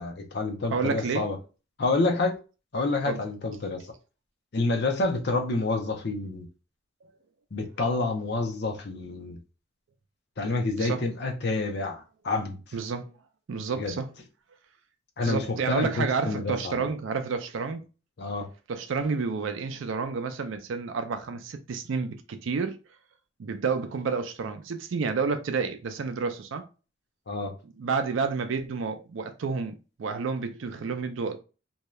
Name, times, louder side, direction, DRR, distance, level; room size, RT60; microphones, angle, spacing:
voice 1, 0.0-1.4 1.8-2.3 2.7-3.8 4.5-6.5 7.5-9.4 10.4-12.6 13.8-13.9 15.2-16.9 18.2-18.5 27.3-27.5, left 3 dB, 55° left, 0.6 m, -28 dB
voice 2, 0.7-1.3 3.1-3.2 10.8-11.0 12.7-13.1 13.5-14.1 15.2-17.8 18.7-22.8 23.4-26.7 27.6-31.4, right 5 dB, 70° right, 0.4 m, -30 dB
2.7 x 2.3 x 3.0 m
head